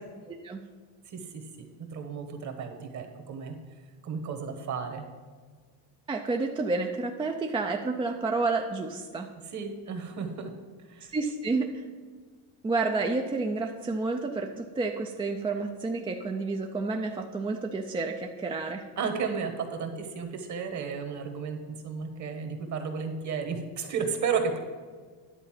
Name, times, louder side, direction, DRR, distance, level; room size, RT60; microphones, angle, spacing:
voice 1, 0.3-0.6 6.1-9.3 11.1-11.8 12.6-18.8, right 3 dB, 15° right, 3 dB, 0.3 m, -30 dB
voice 2, 1.1-3.5 4.0-5.1 9.5-10.5 10.9-11.1 19.0-21.6 21.8-24.6, right 5 dB, 40° right, 5 dB, 1.2 m, -33 dB
10.0 x 4.0 x 7.4 m, 1.5 s
cardioid pair, 135°, 43 cm